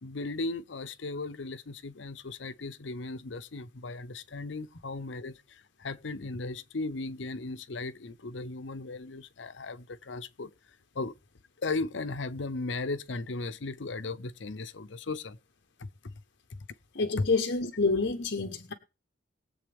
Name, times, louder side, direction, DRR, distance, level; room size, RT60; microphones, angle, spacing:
voice 1, 0.0-10.5 10.9-11.1 11.6-15.4 16.0-16.1 17.2-17.3, left 3 dB, 80° left, 0.7 m, -36 dB
voice 2, 16.9-18.7, left 3 dB, 60° left, 1.1 m, -28 dB
21.5 x 7.8 x 3.5 m
head